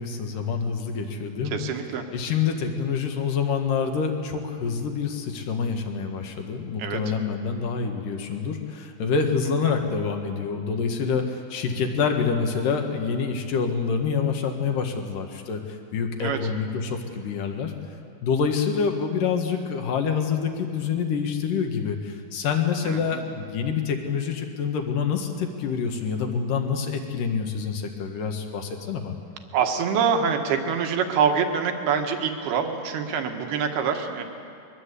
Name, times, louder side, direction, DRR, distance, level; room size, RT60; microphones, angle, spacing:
voice 1, 0.0-1.6 2.1-17.7 18.2-29.2, left 6 dB, 60° left, 4 dB, 2.7 m, -27 dB
voice 2, 1.5-2.1 6.8-7.0 9.7-9.8 16.2-16.4 22.8-23.2 29.5-34.2, right 6 dB, 65° right, 5 dB, 3.2 m, -25 dB
23.0 x 21.5 x 8.3 m, 2.4 s
omnidirectional pair, 5.3 m